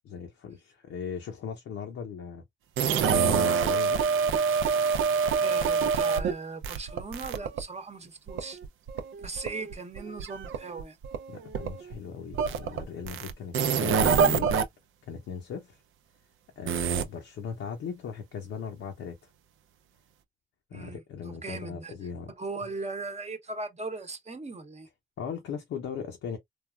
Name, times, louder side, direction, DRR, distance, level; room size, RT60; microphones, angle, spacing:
voice 1, 0.1-2.4 3.1-4.0 11.3-14.5 15.1-15.7 16.6-19.2 20.7-22.3 25.2-26.4, left 7 dB, 85° left, 0.7 m, -38 dB
sound 1, 2.8-6.3 6.6-7.6 8.3-11.9 12.3-14.6 16.7-17.0, right 6 dB, 80° right, 0.5 m, -26 dB
voice 2, 5.4-8.6 9.2-11.0 20.7-21.9 22.3-24.9, right 3 dB, 35° right, 0.8 m, -38 dB
3.3 x 2.3 x 2.3 m
cardioid pair, 65°, 20 cm